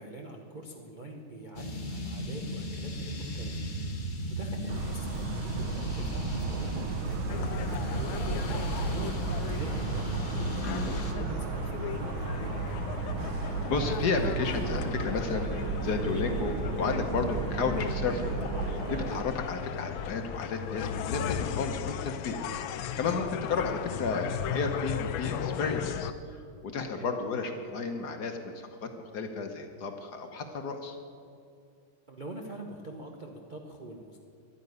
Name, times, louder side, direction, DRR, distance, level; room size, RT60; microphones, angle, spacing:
voice 1, 0.0-3.6 4.3-7.3 7.9-12.7 26.8-27.1 32.1-34.2, right 1 dB, 35° right, 0 dB, 0.7 m, -44 dB
sound 1, 1.6-11.1, equal, 30° left, 1.1 m, -36 dB
Motor vehicle (road) / Siren, 4.7-19.2, right 4 dB, 75° right, 1.5 m, -34 dB
sound 2, 7.3-26.1, left 10 dB, 75° left, 1.3 m, -36 dB
voice 2, 10.6-10.9 13.7-22.4 23.0-31.0, left 4 dB, 60° left, 5 dB, 1.4 m, -32 dB
11.5 x 9.6 x 9.5 m, 2.4 s
omnidirectional pair, 2.3 m